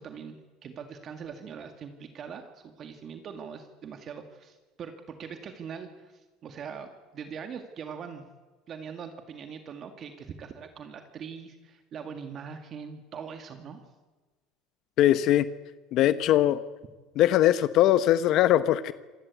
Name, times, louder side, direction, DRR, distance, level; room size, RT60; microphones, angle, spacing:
voice 1, 0.0-6.9 7.1-8.2 8.7-13.8, right 6 dB, 40° right, 6 dB, 2.0 m, -42 dB
voice 2, 15.0-15.5 15.9-16.6 17.2-18.9, left 12 dB, 55° left, 14 dB, 0.9 m, -21 dB
26.5 x 18.0 x 8.3 m, 1.3 s
cardioid pair, 135°, 0 cm